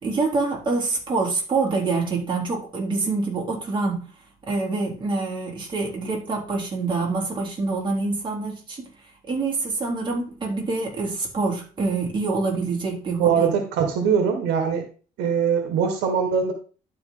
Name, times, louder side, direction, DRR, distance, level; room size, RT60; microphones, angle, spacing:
voice 1, 0.0-4.0 4.5-8.9 9.3-13.5, right 3 dB, 30° right, -2 dB, 3.5 m, -26 dB
voice 2, 13.2-14.9 15.2-16.5, right 7 dB, 90° right, 5 dB, 1.6 m, -22 dB
12.0 x 4.4 x 3.9 m, 0.37 s
cardioid pair, 110°, 17 cm